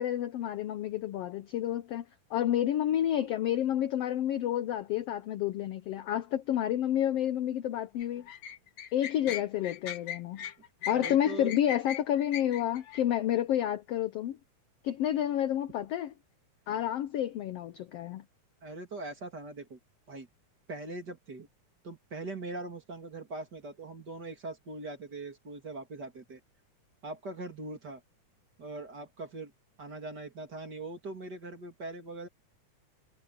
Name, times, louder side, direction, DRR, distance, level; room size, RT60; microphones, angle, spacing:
voice 1, 0.0-2.0 2.3-8.2 8.9-10.4 10.9-14.4 14.8-16.1 16.7-18.2, left 11 dB, 80° left, 1.3 m, -30 dB
sound 1, 8.0-13.0, left 10 dB, 60° left, 2.3 m, -39 dB
voice 2, 10.9-11.6 18.6-19.8 20.1-20.3 20.7-21.5 21.8-26.4 27.0-28.0 28.6-29.5 29.8-32.3, right 2 dB, 30° right, 3.2 m, -41 dB
omnidirectional pair, 3.7 m